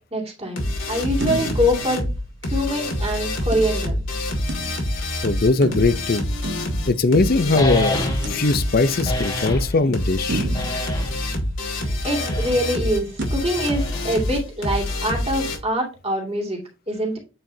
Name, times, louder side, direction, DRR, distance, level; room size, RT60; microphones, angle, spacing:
voice 1, 0.1-2.1 2.4-4.0 11.8-17.2, equal, 30° right, 2.4 m, -24 dB
sound 1, 0.6-15.6, left 1 dB, 70° left, 2.4 m, -26 dB
sound 2, 1.2-2.8 3.5-5.1 5.6-7.5 8.2-9.1 9.6-9.7 10.3-12.0 13.2-13.3, right 2 dB, 60° right, 0.9 m, -32 dB
voice 2, 5.0-6.3 6.9-8.0 8.3-10.5, left 3 dB, 45° left, 0.6 m, -20 dB
sound 3, 7.6-8.5 9.1-9.7 10.5-11.3 12.0-12.7 13.6-14.3, left 1 dB, 20° left, 1.4 m, -28 dB
8.9 x 4.7 x 2.8 m
head